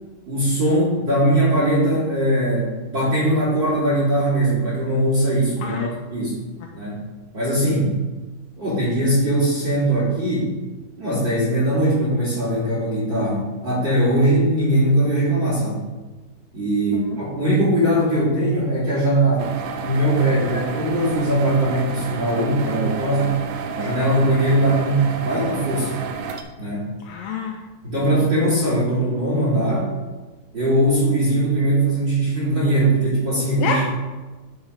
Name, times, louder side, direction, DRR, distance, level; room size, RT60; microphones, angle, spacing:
voice 1, 0.3-6.4 6.7-7.0 7.3-7.9 8.6-10.5 11.0-15.8 16.5-19.5 19.8-23.3 23.7-26.0 26.6-26.8 27.8-29.9 30.5-33.8, right 1 dB, 30° right, -9 dB, 3.3 m, -20 dB
sound 1, 19.4-26.4, right 6 dB, 80° right, 1.9 m, -31 dB
voice 2, 27.0-27.6 28.2-28.3 33.6-33.8, left 6 dB, 85° left, 3 dB, 2.0 m, -27 dB
9.7 x 4.8 x 5.3 m, 1.3 s
omnidirectional pair, 4.5 m